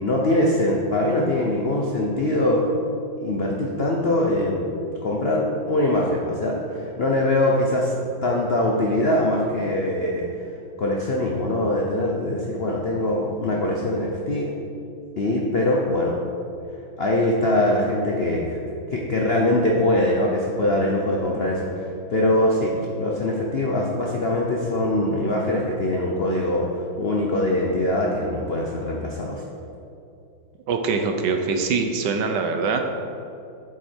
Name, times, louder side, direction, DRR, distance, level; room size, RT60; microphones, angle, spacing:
voice 1, 0.0-2.7 3.2-4.7 5.0-10.3 10.8-14.5 15.2-16.2 17.0-29.4, left 1 dB, 60° left, -2 dB, 0.6 m, -23 dB
voice 2, 30.7-32.8, right 4 dB, 70° right, 5 dB, 1.2 m, -23 dB
7.8 x 7.8 x 4.4 m, 2.6 s
omnidirectional pair, 2.2 m